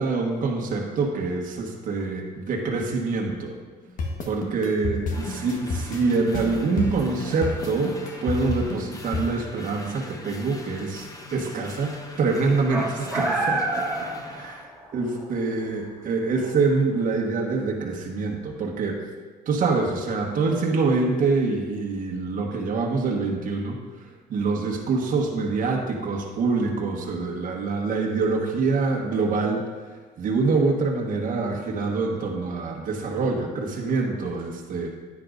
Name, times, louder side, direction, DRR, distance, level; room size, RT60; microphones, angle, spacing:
voice 1, 0.0-3.5 4.2-11.9 12.2-14.6 14.9-19.0 19.5-23.8 24.3-29.6 30.2-34.9, right 4 dB, 55° right, -1 dB, 1.4 m, -25 dB
sound 1, 4.0-9.3, left 3 dB, 50° left, 1.3 m, -29 dB
sound 2, 5.1-14.6, left 2 dB, 20° left, 0.9 m, -42 dB
sound 3, 12.7-14.9 15.2-15.3 16.5-16.6, right 2 dB, 5° right, 2.5 m, -27 dB
10.0 x 9.5 x 2.6 m, 1.4 s
cardioid pair, 110°, 17 cm